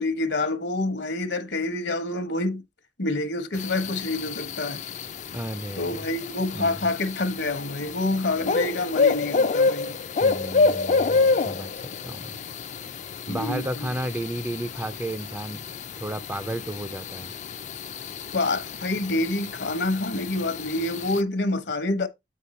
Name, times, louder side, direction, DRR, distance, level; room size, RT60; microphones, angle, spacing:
voice 1, 0.0-2.6 3.0-4.8 5.8-10.0 13.3-13.9 18.3-22.1, left 2 dB, 70° left, 1.0 m, -27 dB
sound 1, 3.5-21.2, left 4 dB, 40° left, 0.4 m, -28 dB
voice 2, 5.3-6.0 6.5-6.9 10.2-11.7 12.0-12.7 13.3-15.6 16.0-17.3, right 1 dB, 10° right, 0.5 m, -33 dB
8.5 x 4.4 x 4.2 m
head